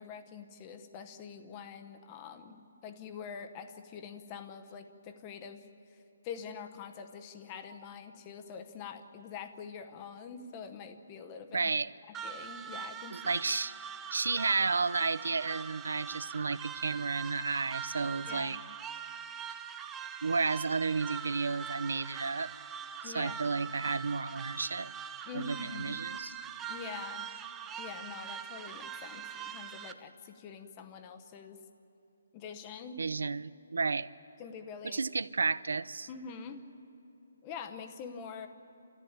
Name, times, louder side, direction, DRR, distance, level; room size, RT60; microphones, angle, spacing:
voice 1, 0.0-5.7 6.2-11.7 12.1-13.2 18.3-18.5 23.0-23.3 25.2-26.0 26.7-27.3 27.8-31.6 32.3-33.1 34.4-35.0 36.1-36.6 37.4-38.5, left 6 dB, 15° left, 8 dB, 0.9 m, -45 dB
voice 2, 11.5-11.9 13.1-13.7 14.1-18.6 20.2-22.5 23.0-24.9 25.3-26.3 33.0-34.1 34.8-36.1, right 4 dB, 85° right, 17 dB, 0.6 m, -32 dB
sound 1, 12.1-29.9, right 8 dB, 10° right, 0.4 m, -42 dB
29.0 x 14.5 x 8.8 m, 2.9 s
hypercardioid pair, 175°, 0 cm